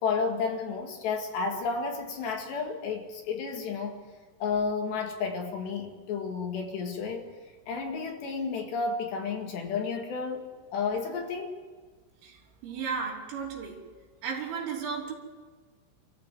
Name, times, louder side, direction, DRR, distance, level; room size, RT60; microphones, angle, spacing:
voice 1, 0.0-4.0 4.4-7.3 7.7-11.5, left 5 dB, 60° left, 2 dB, 4.0 m, -31 dB
voice 2, 12.2-13.9 14.2-15.1, right 6 dB, 65° right, 0 dB, 5.4 m, -34 dB
27.0 x 14.5 x 7.8 m, 1.5 s
omnidirectional pair, 5.9 m